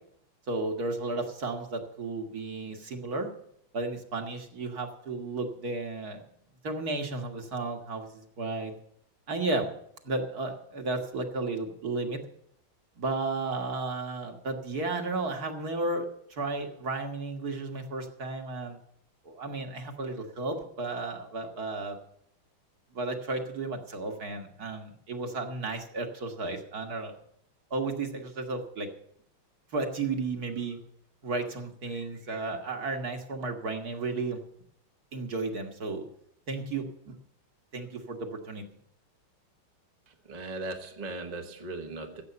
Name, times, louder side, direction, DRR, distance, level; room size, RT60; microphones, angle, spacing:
voice 1, 0.5-3.3 3.7-6.2 6.6-8.7 9.3-9.7 10.0-12.2 13.0-16.1 16.3-18.8 19.2-22.0 22.9-27.1 27.7-28.9 29.7-30.8 31.2-34.4 35.1-36.0 36.5-37.2 37.7-38.6, right 3 dB, 50° right, 4 dB, 2.0 m, -33 dB
voice 2, 40.1-42.2, right 2 dB, 25° right, 3 dB, 1.1 m, -38 dB
15.0 x 8.0 x 6.9 m, 0.71 s
omnidirectional pair, 2.3 m